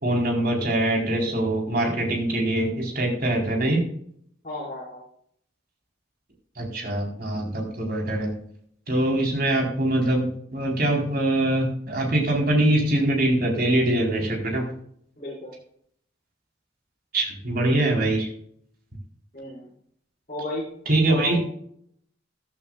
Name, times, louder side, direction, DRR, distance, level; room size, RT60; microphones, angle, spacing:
voice 1, 0.0-3.8 6.6-8.3 8.9-14.6 17.1-18.3 20.9-21.4, right 1 dB, 50° right, 0 dB, 4.2 m, -23 dB
voice 2, 4.4-5.0 15.2-15.5 19.3-19.7 20.3-20.6 21.1-21.4, left 1 dB, 40° left, -9 dB, 5.5 m, -33 dB
15.0 x 12.0 x 2.4 m, 0.66 s
head